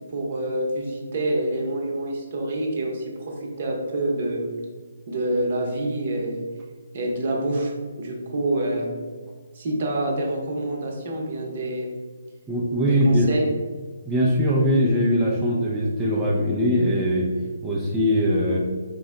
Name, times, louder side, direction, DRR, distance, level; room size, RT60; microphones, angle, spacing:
voice 1, 0.1-4.5 5.1-6.4 6.9-8.9 9.5-12.0 12.8-13.5, right 1 dB, 50° right, 0 dB, 0.8 m, -27 dB
voice 2, 12.5-13.3 14.1-17.3 17.6-18.6, equal, 10° right, -6 dB, 0.4 m, -21 dB
3.8 x 2.1 x 3.7 m, 1.4 s
figure-of-eight pair, 145°, 0 cm